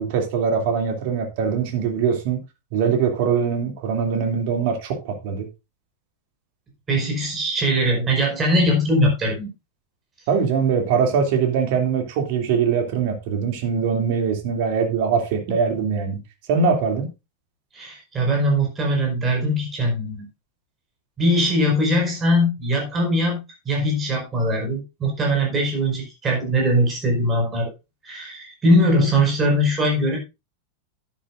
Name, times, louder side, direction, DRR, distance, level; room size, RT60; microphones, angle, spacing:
voice 1, 0.0-2.4 2.7-5.5 10.3-16.2 16.5-17.1, right 6 dB, 50° right, 2.8 m, -22 dB
voice 2, 6.9-9.5 17.7-20.3 21.2-27.7 28.0-30.2, equal, 20° right, 5.1 m, -21 dB
11.5 x 11.0 x 2.6 m
figure-of-eight pair, 90°, 0 cm